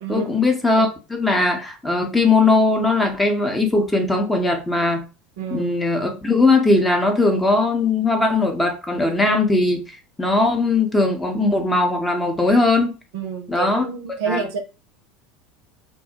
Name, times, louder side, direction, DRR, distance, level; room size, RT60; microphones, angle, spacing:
voice 1, 0.1-5.0 5.5-13.0 13.5-13.9 14.3-14.4, left 2 dB, 10° left, 0.7 m, -19 dB
voice 2, 5.4-5.7 13.1-14.6, right 6 dB, 70° right, 0.4 m, -28 dB
2.3 x 2.0 x 2.7 m
hypercardioid pair, 75°, 0 cm